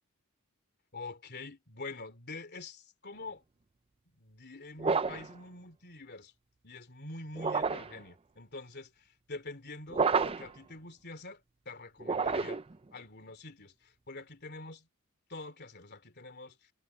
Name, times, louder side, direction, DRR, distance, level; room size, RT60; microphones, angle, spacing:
voice 1, 0.9-3.4 4.2-6.3 6.6-12.6 12.9-14.9 15.3-16.7, left 3 dB, 50° left, 3.2 m, -46 dB
sound 1, 4.8-5.3 7.4-8.0 9.9-10.6 12.0-12.8, right 5 dB, 25° right, 0.5 m, -30 dB
head